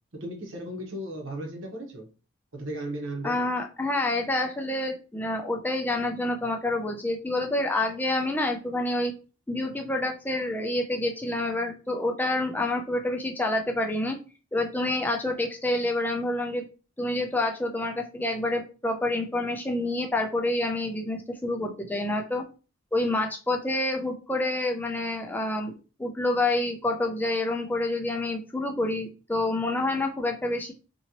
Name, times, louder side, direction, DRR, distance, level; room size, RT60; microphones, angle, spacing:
voice 1, 0.2-2.1 2.5-3.4, right 1 dB, 60° right, 1 dB, 0.9 m, -35 dB
voice 2, 3.2-9.1 9.5-14.2 14.5-16.6 17.0-22.4 22.9-30.7, left 2 dB, 10° left, 3 dB, 0.4 m, -28 dB
2.9 x 2.7 x 2.9 m, 0.34 s
head